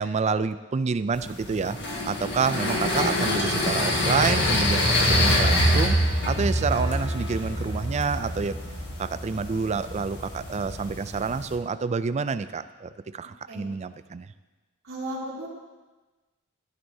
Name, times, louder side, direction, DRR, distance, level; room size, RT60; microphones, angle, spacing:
voice 1, 0.0-6.0 6.3-8.6 9.0-14.3, right 5 dB, 30° right, 13 dB, 0.3 m, -28 dB
sound 1, 1.1-11.6, left 1 dB, 55° left, 1.6 m, -25 dB
voice 2, 14.9-15.5, right 1 dB, 75° right, -8 dB, 3.2 m, -34 dB
14.0 x 11.0 x 2.8 m, 1.2 s
head